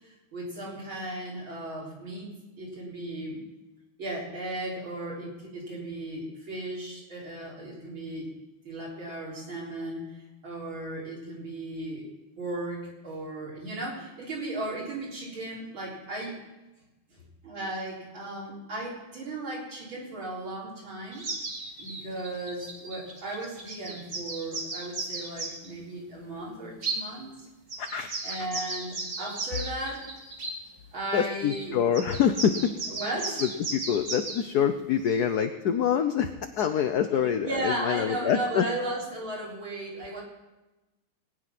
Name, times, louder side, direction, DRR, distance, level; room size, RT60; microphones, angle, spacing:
voice 1, 0.0-2.3 2.6-3.4 4.0-8.3 8.6-10.1 10.4-12.1 12.4-16.4 17.1-21.2 21.8-27.3 28.2-30.1 30.9-31.8 32.9-33.5 37.1-40.2, right 1 dB, 65° right, -4 dB, 4.6 m, -36 dB
sound 1, 21.1-25.7 26.8-27.0 27.7-30.5 31.5-31.6 31.9-34.4 35.1-35.2, right 3 dB, 45° right, 2.5 m, -35 dB
voice 2, 27.8-28.1 31.1-32.7 33.7-36.3 36.6-38.7, left 8 dB, 65° left, 7 dB, 1.0 m, -25 dB
19.5 x 9.5 x 5.9 m, 1.1 s
omnidirectional pair, 2.3 m